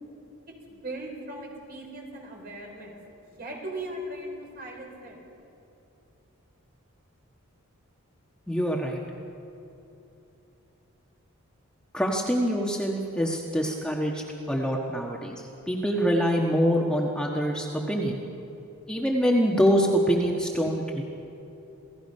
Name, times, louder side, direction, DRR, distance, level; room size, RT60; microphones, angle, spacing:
voice 1, 0.7-3.0 3.4-5.2, right 1 dB, 45° right, 0 dB, 4.3 m, -38 dB
voice 2, 8.5-9.0 11.9-18.2 18.9-21.0, equal, 5° left, -1 dB, 1.3 m, -25 dB
27.5 x 17.0 x 5.5 m, 2.9 s
head